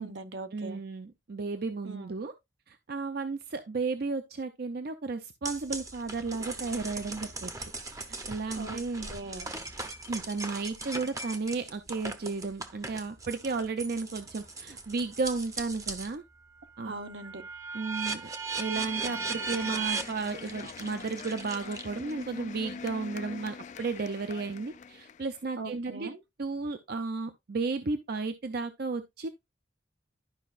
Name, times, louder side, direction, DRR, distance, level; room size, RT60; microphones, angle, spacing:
voice 1, 0.0-0.8 1.8-2.2 8.6-9.5 16.8-17.4 25.6-26.2, right 3 dB, 80° right, 1.0 m, -40 dB
voice 2, 0.5-2.3 2.7-7.5 7.9-9.1 10.1-16.2 16.8-16.9 17.7-26.1 26.4-29.3, right 4 dB, 60° right, 0.6 m, -34 dB
sound 1, 5.5-16.2 16.6-22.2, right 4 dB, 20° right, 0.7 m, -38 dB
sound 2, 18.7-25.4, left 5 dB, 40° left, 0.4 m, -44 dB
12.0 x 5.1 x 2.4 m
head